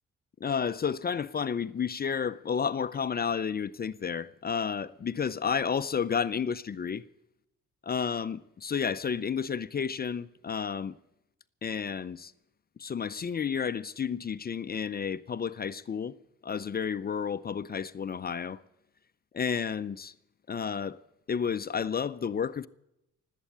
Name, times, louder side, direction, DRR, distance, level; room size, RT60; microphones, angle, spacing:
voice 1, 0.4-7.0 7.8-11.0 11.6-12.3 12.8-16.1 16.4-18.6 19.3-20.1 20.5-21.0 21.3-22.7, left 6 dB, 30° left, 0.5 m, -31 dB
19.0 x 8.4 x 8.5 m
cardioid pair, 90°, 30 cm